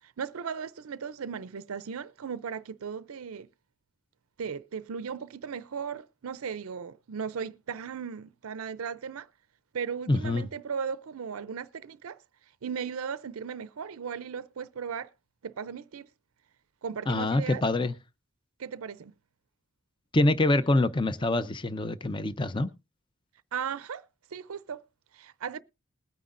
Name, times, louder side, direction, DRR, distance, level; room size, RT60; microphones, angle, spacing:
voice 1, 0.0-3.5 4.4-9.3 9.7-12.2 12.6-15.1 15.4-16.1 16.8-17.6 18.6-19.1 23.5-24.8 25.1-25.6, right 6 dB, 90° right, 0.5 m, -37 dB
voice 2, 10.1-10.5 17.1-17.9 20.1-22.7, left 2 dB, 20° left, 0.6 m, -25 dB
20.5 x 9.2 x 2.5 m
head